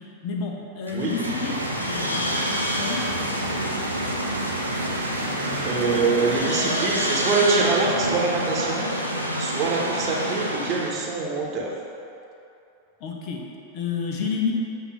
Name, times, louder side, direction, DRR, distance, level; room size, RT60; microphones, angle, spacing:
voice 1, 0.2-1.6 1.9-2.2 2.6-3.0 5.2-6.7 13.0-13.4 13.7-14.5, left 5 dB, 40° left, 0 dB, 1.0 m, -31 dB
sound 1, 0.9-11.1, equal, 90° left, 0.6 m, -27 dB
sound 2, 0.9-8.6, right 1 dB, 85° right, 1.0 m, -35 dB
voice 2, 5.6-8.9 9.4-11.7, right 4 dB, 30° right, -3 dB, 1.1 m, -24 dB
8.4 x 2.8 x 6.0 m, 2.7 s
figure-of-eight pair, 90°, 0 cm